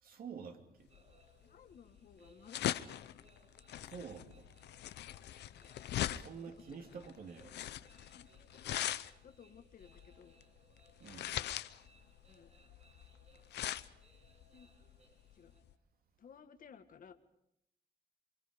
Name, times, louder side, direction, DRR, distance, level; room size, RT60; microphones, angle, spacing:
voice 1, 0.0-0.9 3.8-4.5 5.9-7.5 11.0-11.4, right 6 dB, 60° right, 2.9 m, -49 dB
sound 1, 0.9-15.7, left 12 dB, 85° left, 0.8 m, -41 dB
sound 2, 0.9-15.6, right 2 dB, 40° right, 7.5 m, -68 dB
voice 2, 1.4-2.9 5.5-5.7 6.2-7.0 8.2-8.3 9.2-10.4 11.2-11.5 12.3-12.5 14.5-14.7 15.3-15.5 16.2-17.1, left 7 dB, 55° left, 1.8 m, -58 dB
28.5 x 23.5 x 5.3 m
cardioid pair, 115°, 17 cm